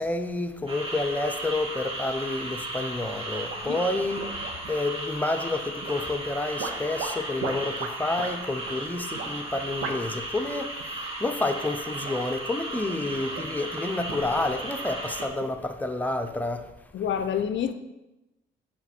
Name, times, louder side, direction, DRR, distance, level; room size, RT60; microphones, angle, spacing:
voice 1, 0.0-4.3 4.7-16.7, left 2 dB, 10° left, 0.7 m, -29 dB
sound 1, 0.7-15.3, right 1 dB, 25° right, 2.3 m, -35 dB
sound 2, 3.5-4.8 5.8-6.2 6.6-8.3 8.6-8.8 9.1-9.3 9.8-10.2 10.5-10.9 11.7-12.3 12.7-13.6 14.0-15.5, right 4 dB, 85° right, 0.9 m, -38 dB
voice 2, 16.9-17.7, left 8 dB, 65° left, 0.5 m, -28 dB
5.8 x 4.3 x 6.0 m
supercardioid pair, 65°, 21 cm